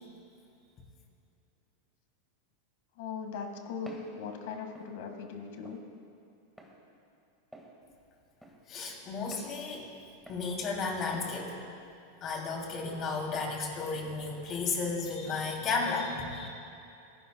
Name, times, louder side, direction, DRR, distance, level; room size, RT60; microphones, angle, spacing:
voice 1, 3.0-5.8, left 5 dB, 70° left, 4 dB, 1.7 m, -39 dB
Walk footsteps, 3.9-4.1 4.7-4.9 5.6-5.8 6.6-6.7 7.5-7.7 8.4-8.6 9.3-9.5 10.3-10.5 11.1-11.3, right 1 dB, ahead, 1.8 m, -48 dB
voice 2, 8.7-9.9 10.3-11.6 12.2-16.5, left 4 dB, 35° left, 0 dB, 2.8 m, -33 dB
27.5 x 11.5 x 2.3 m, 2.6 s
supercardioid pair, 130°, 0 cm